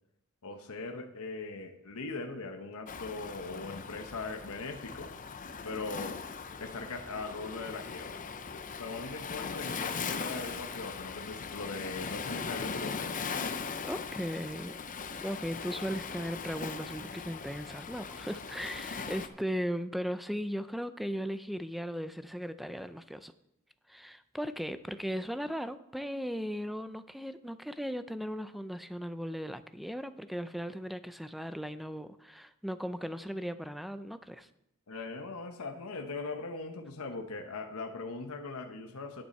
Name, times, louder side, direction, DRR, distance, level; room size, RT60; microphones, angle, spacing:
voice 1, 0.4-5.1 5.6-6.2 6.6-8.2 8.5-13.3 34.9-39.2, left 3 dB, 70° left, 4 dB, 0.9 m, -40 dB
Waves surf, 2.9-19.3, left 5 dB, 35° left, 0.6 m, -39 dB
voice 2, 13.8-14.8 15.2-23.3 23.9-34.5, equal, ahead, 12 dB, 0.4 m, -37 dB
10.5 x 9.1 x 4.2 m, 0.80 s
head